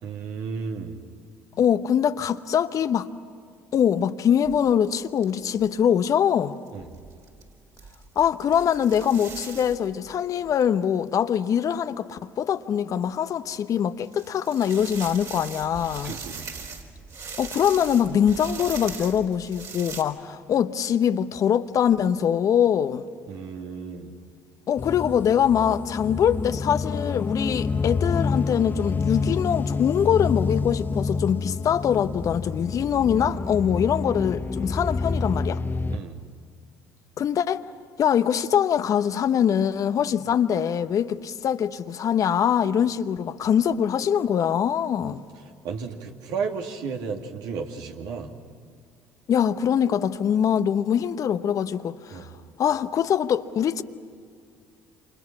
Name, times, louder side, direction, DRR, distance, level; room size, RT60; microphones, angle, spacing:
voice 1, 0.0-1.0 6.7-6.9 16.0-16.5 23.3-24.1 35.9-36.2 45.0-45.1 45.6-48.3 52.1-52.3, right 5 dB, 70° right, 2.6 m, -33 dB
voice 2, 1.6-3.1 3.7-6.6 8.2-16.1 17.4-23.1 24.7-35.6 37.2-37.6 38.0-45.2 49.3-52.3 52.6-53.8, left 8 dB, 50° left, 1.0 m, -23 dB
walking in leaves, 4.4-4.9 5.2-5.3 5.5-5.7 6.7-10.6 12.1-12.2 13.0-13.1 14.0-20.0, right 5 dB, 50° right, 4.2 m, -40 dB
sound 1, 24.8-36.0, left 4 dB, 25° left, 0.9 m, -28 dB
28.5 x 28.0 x 6.1 m
hypercardioid pair, 65°, 7 cm